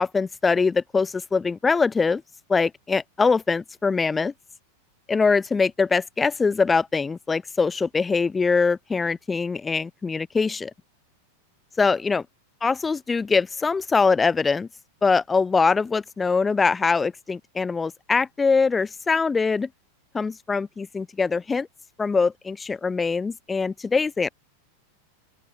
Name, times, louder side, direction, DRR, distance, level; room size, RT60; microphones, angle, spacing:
voice 1, 0.0-2.2 2.5-4.3 5.1-10.7 11.8-12.2 12.6-14.7 15.0-19.7 20.1-21.7 22.0-24.3, left 4 dB, 15° left, 0.7 m, -23 dB
open air
figure-of-eight pair, 90°, 0 cm